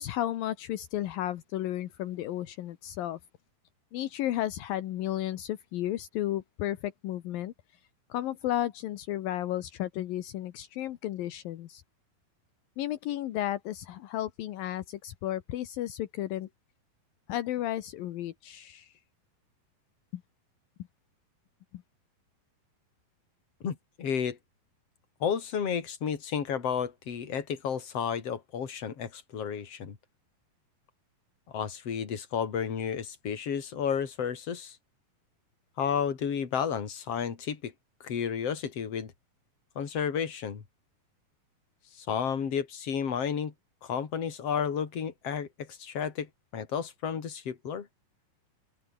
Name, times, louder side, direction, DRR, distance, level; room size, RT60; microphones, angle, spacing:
voice 1, 0.0-3.2 3.9-7.5 8.1-11.8 12.8-16.5 17.3-18.9 20.1-20.2 21.7-21.8, left 13 dB, 75° left, 2.9 m, -33 dB
voice 2, 23.6-24.4 25.2-30.0 31.5-34.8 35.8-37.7 38.0-39.1 39.8-40.6 41.9-43.5 43.8-47.9, left 7 dB, 45° left, 3.7 m, -32 dB
open air
omnidirectional pair, 4.2 m